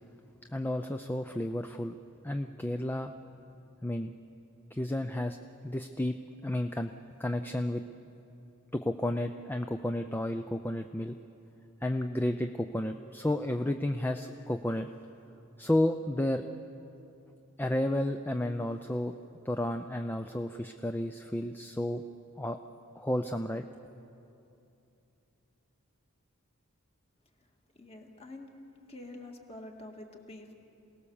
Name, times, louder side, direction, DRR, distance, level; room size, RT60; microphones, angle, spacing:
voice 1, 0.5-1.9 2.2-3.1 3.8-4.1 4.7-5.4 5.6-6.1 6.4-6.9 7.2-7.8 8.7-11.2 11.8-14.9 15.6-16.4 17.6-19.1 19.4-22.0 22.4-22.6 23.0-23.6, left 1 dB, 10° left, 7 dB, 0.4 m, -32 dB
voice 2, 27.8-28.5 28.9-30.6, left 2 dB, 25° left, 2 dB, 2.0 m, -47 dB
27.5 x 18.5 x 7.1 m, 2.8 s
head